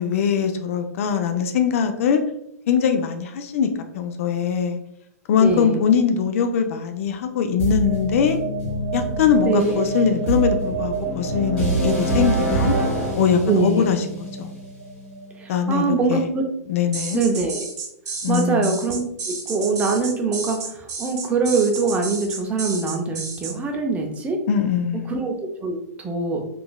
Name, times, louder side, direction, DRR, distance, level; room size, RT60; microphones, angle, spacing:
voice 1, 0.0-2.2 2.7-3.7 3.9-4.8 5.3-8.4 8.9-12.7 13.1-14.5 15.5-16.3 16.7-17.2 18.2-18.7 24.5-25.2, left 7 dB, 55° left, 7 dB, 0.4 m, -21 dB
voice 2, 5.4-5.8 9.3-9.8 13.5-13.8 15.4-16.4 17.1-17.7 18.3-24.4 25.1-25.3 25.6-26.4, right 4 dB, 15° right, 2 dB, 0.5 m, -23 dB
sound 1, 7.6-15.5, right 3 dB, 10° left, 1.4 m, -25 dB
sound 2, 16.9-23.6, right 4 dB, 75° right, 1.1 m, -31 dB
3.8 x 2.4 x 2.2 m, 0.76 s
hypercardioid pair, 130°, 9 cm